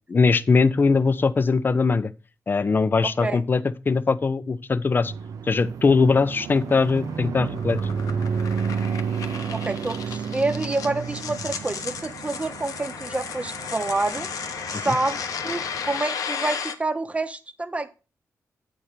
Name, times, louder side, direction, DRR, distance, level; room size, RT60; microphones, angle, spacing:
voice 1, 0.1-2.1 2.5-5.1 5.4-7.8 14.7-15.0, left 4 dB, 35° left, 0.6 m, -21 dB
voice 2, 3.0-3.4 9.3-14.3 14.8-17.9, right 2 dB, 20° right, 0.9 m, -28 dB
sound 1, 5.0-16.0, right 6 dB, 80° right, 0.6 m, -32 dB
sound 2, 6.0-16.7, left 6 dB, 90° left, 0.9 m, -34 dB
8.6 x 4.4 x 6.5 m
cardioid pair, 95°, 6 cm